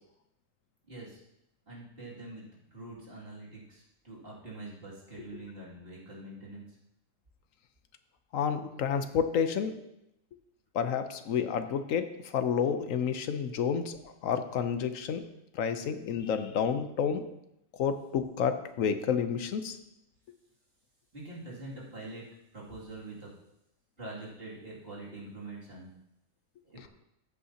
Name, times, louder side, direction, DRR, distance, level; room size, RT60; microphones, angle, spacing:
voice 1, 0.9-1.2 1.7-2.4 2.7-6.8 21.1-22.3 22.5-23.3 24.0-25.9 26.7-26.9, right 2 dB, 45° right, -6 dB, 2.9 m, -44 dB
voice 2, 8.3-9.8 10.7-15.3 15.5-17.3 17.8-19.8, left 7 dB, 80° left, 9 dB, 1.2 m, -30 dB
14.0 x 8.3 x 2.9 m, 0.83 s
omnidirectional pair, 1.4 m